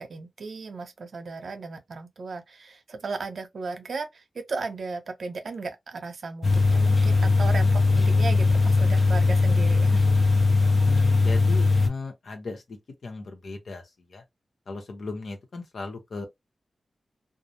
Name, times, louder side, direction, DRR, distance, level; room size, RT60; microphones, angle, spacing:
voice 1, 0.0-10.0, right 4 dB, 75° right, 0.6 m, -36 dB
sound 1, 6.4-11.9, left 3 dB, 40° left, 0.5 m, -20 dB
voice 2, 10.8-14.2 14.7-16.3, left 3 dB, 80° left, 0.8 m, -37 dB
2.3 x 2.0 x 2.7 m
cardioid pair, 65°, 0 cm